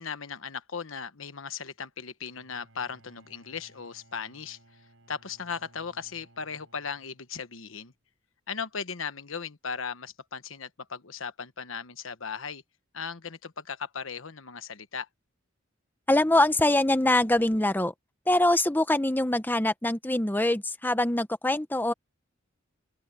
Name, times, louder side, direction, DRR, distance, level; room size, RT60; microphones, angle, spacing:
voice 1, 0.0-4.6 5.1-7.9 8.5-12.6 12.9-15.1, left 6 dB, 80° left, 1.2 m, -37 dB
Bowed string instrument, 2.2-7.5, right 1 dB, 75° right, 5.0 m, -60 dB
voice 2, 16.1-17.9 18.3-21.9, left 1 dB, 10° left, 0.9 m, -24 dB
open air
head